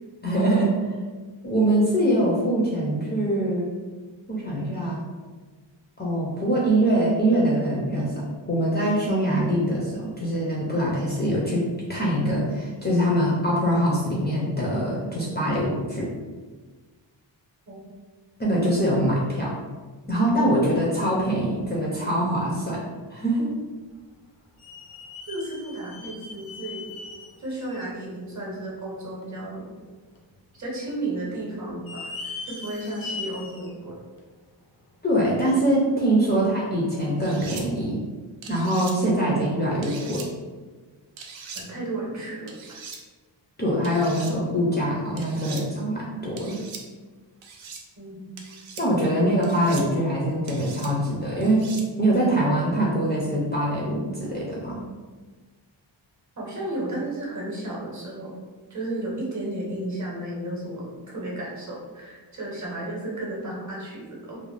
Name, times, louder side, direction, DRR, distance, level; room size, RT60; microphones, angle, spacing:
voice 1, 0.2-0.7 1.4-3.7 4.3-5.0 6.0-16.1 18.4-19.6 20.1-22.8 23.1-23.5 35.0-38.0 38.5-40.3 43.6-46.6 48.8-51.6 52.0-54.8, right 1 dB, 25° left, -6 dB, 0.4 m, -23 dB
sound 1, 23.8-23.9 24.6-28.0 28.5-28.6 29.2-29.3 30.2-30.6 30.9-31.0 31.7-33.7 34.2-34.3 35.2-35.3, left 4 dB, 90° left, 0.7 m, -39 dB
voice 2, 25.3-26.9 27.4-29.7 30.5-34.0 41.5-42.5 48.0-48.4 56.4-58.4 58.7-64.4, right 1 dB, 40° right, -4 dB, 0.7 m, -33 dB
sound 2, 37.2-37.6 38.4-38.9 39.8-40.3 41.2-41.6 42.5-43.0 43.8-44.3 45.2-45.6 46.4-46.8 47.4-47.8 48.4-48.8 49.4-49.9 50.5-50.9 51.4-51.9, right 5 dB, 85° right, 0.5 m, -40 dB
2.5 x 2.0 x 3.2 m, 1.4 s
wide cardioid pair, 170°, 45 cm